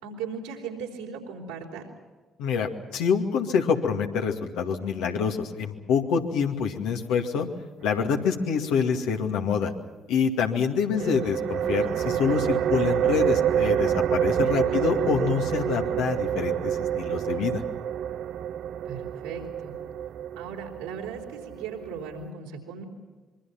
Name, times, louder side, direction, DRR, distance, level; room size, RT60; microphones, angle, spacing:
voice 1, 0.0-1.8 11.0-11.2 14.7-15.1 18.8-19.7 20.4-22.8, right 6 dB, 75° right, 0 dB, 4.4 m, -38 dB
voice 2, 2.4-7.5 7.8-9.7 10.1-17.6, left 6 dB, 70° left, 3 dB, 2.2 m, -26 dB
sound 1, 10.9-22.3, right 9 dB, 60° right, 0.7 m, -27 dB
25.5 x 23.5 x 5.9 m, 1.3 s
figure-of-eight pair, 45°, 0 cm